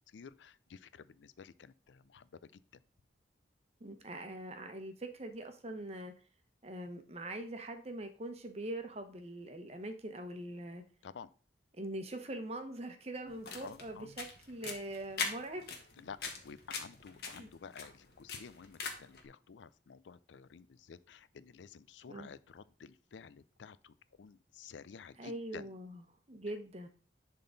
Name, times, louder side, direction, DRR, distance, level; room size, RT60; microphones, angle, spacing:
voice 1, 0.1-2.8 11.0-11.3 13.6-14.1 16.0-25.7, left 6 dB, 80° left, 16 dB, 0.4 m, -52 dB
voice 2, 3.8-6.1 6.6-10.8 11.7-15.7 17.4-17.5 22.1-22.3 25.2-26.9, right 1 dB, 35° right, 7 dB, 1.0 m, -43 dB
sound 1, 13.3-19.2, left 4 dB, 60° left, 1.5 m, -43 dB
10.5 x 3.8 x 4.0 m, 0.39 s
head